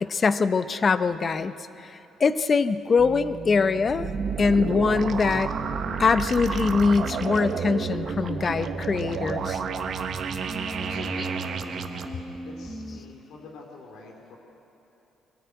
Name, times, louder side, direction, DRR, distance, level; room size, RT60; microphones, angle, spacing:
voice 1, 0.0-1.5 1.8-4.1 4.4-5.5 6.0-9.6 11.2-11.3, left 4 dB, 30° left, 12 dB, 0.7 m, -23 dB
sound 1, 3.0-13.0, equal, ahead, 1.4 m, -39 dB
sound 2, 3.9-12.0, right 6 dB, 50° right, 1.2 m, -31 dB
voice 2, 10.8-12.1 12.4-14.4, left 3 dB, 75° left, 0 dB, 2.9 m, -45 dB
23.0 x 14.5 x 9.4 m, 3.0 s
cardioid pair, 130°, 0 cm